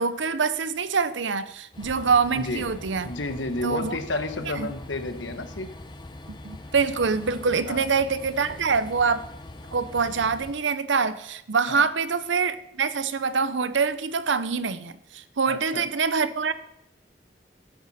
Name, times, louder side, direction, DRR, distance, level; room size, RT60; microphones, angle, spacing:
voice 1, 0.0-3.1 3.6-4.0 4.6-4.7 6.4-9.3 9.7-16.5, right 5 dB, 90° right, 0.7 m, -25 dB
Train, 1.7-10.5, left 1 dB, 25° left, 0.7 m, -42 dB
voice 2, 3.0-5.7 7.7-7.9 11.7-11.8 15.5-15.9, left 2 dB, 90° left, 1.2 m, -31 dB
14.0 x 9.3 x 4.2 m
head